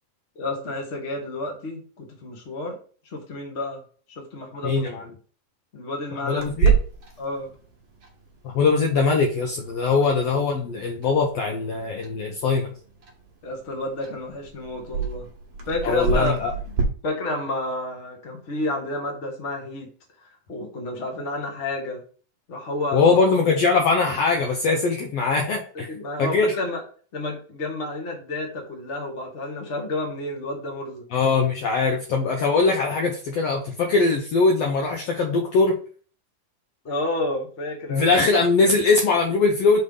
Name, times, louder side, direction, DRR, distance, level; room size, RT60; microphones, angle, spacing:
voice 1, 0.3-2.8 3.0-3.8 4.1-4.9 5.7-6.4 7.2-7.5 9.9-10.1 13.4-15.3 15.7-16.3 17.0-19.9 20.5-22.0 22.5-23.1 25.9-26.8 27.1-31.0 36.8-38.1, left 2 dB, 45° left, 1 dB, 0.9 m, -30 dB
voice 2, 4.6-5.0 6.1-6.7 8.4-12.7 15.8-16.5 22.9-25.9 26.2-26.5 31.1-35.7 37.9-39.8, left 4 dB, 90° left, 1 dB, 1.4 m, -21 dB
Clock, 6.4-16.8, right 6 dB, 50° right, 1.5 m, -30 dB
5.4 x 3.3 x 5.5 m, 0.42 s
omnidirectional pair, 3.9 m